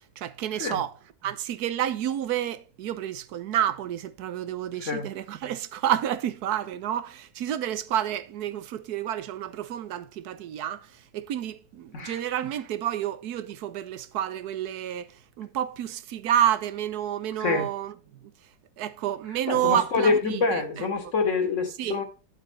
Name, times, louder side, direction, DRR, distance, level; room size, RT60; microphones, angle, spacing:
voice 1, 0.2-0.9 1.2-18.3 18.8-20.9 21.8-22.0, right 11 dB, 80° right, 1.3 m, -29 dB
voice 2, 19.5-22.0, left 4 dB, 50° left, 2.2 m, -26 dB
11.0 x 7.5 x 3.2 m
omnidirectional pair, 1.7 m